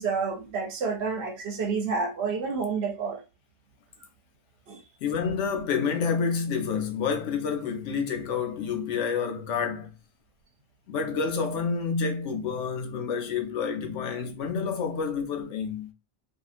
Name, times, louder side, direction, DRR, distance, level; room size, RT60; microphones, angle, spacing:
voice 1, 0.0-3.2 4.7-4.8, right 5 dB, 65° right, 0.8 m, -29 dB
voice 2, 5.0-9.9 10.9-15.9, left 6 dB, 75° left, 0.9 m, -29 dB
2.7 x 2.4 x 2.4 m
omnidirectional pair, 1.3 m